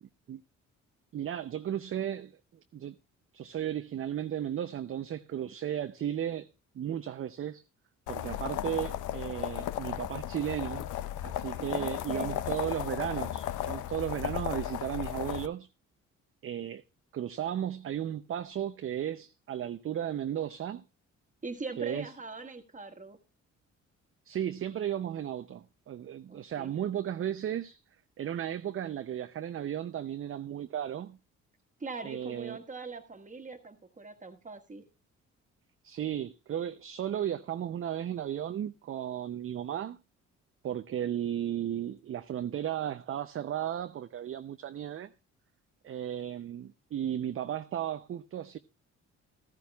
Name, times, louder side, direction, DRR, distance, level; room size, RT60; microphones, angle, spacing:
voice 1, 1.1-3.0 3.3-6.5 6.7-7.6 8.1-10.9 11.2-15.7 16.4-16.8 17.1-20.8 21.8-22.1 24.3-27.8 28.2-31.2 32.0-32.6 35.8-40.0 40.6-45.1 45.8-48.6, right 10 dB, 45° right, 0.5 m, -35 dB
sound 1, 8.1-15.5, left 12 dB, 80° left, 0.6 m, -35 dB
voice 2, 11.6-12.4 21.4-23.2 26.3-26.7 31.8-34.8, right 3 dB, 25° right, 1.5 m, -42 dB
14.0 x 13.5 x 2.3 m
cardioid pair, 90°, 30 cm